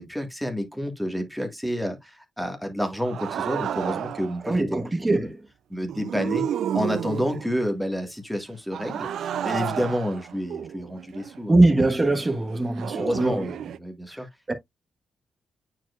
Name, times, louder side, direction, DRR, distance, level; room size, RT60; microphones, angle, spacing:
voice 1, 0.0-4.7 5.0-5.3 5.7-6.4 6.7-11.6 12.9-14.3, equal, ahead, 1.6 m, -29 dB
sound 1, 3.0-4.4 5.9-7.6 8.7-11.4 12.8-13.8, right 9 dB, 75° right, 0.4 m, -31 dB
voice 2, 4.4-5.4 11.5-13.4 14.5-14.6, right 2 dB, 15° right, 1.2 m, -21 dB
9.0 x 4.6 x 2.4 m
wide cardioid pair, 145°, 0 cm